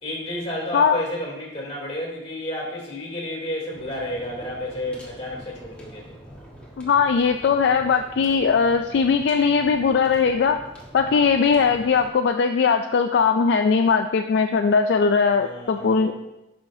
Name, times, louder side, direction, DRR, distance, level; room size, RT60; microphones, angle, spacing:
voice 1, 0.0-6.2 15.3-16.1, left 1 dB, 30° left, -4 dB, 2.7 m, -31 dB
sound 1, 3.7-12.1, equal, 5° left, 1.3 m, -44 dB
voice 2, 6.8-10.6 10.9-16.1, left 5 dB, 60° left, 6 dB, 0.3 m, -20 dB
10.5 x 5.6 x 2.7 m, 0.93 s
head